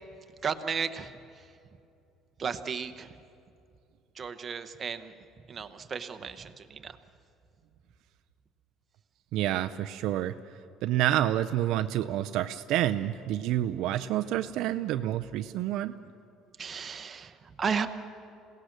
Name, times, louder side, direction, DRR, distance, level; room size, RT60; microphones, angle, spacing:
voice 1, 0.4-1.1 2.4-3.1 4.2-5.1 5.5-7.0 16.6-17.9, right 6 dB, 25° right, 9 dB, 0.9 m, -34 dB
voice 2, 9.3-10.3 10.8-15.9, right 13 dB, 60° right, 11 dB, 0.5 m, -28 dB
27.5 x 17.5 x 6.6 m, 2.6 s
cardioid pair, 155°, 0 cm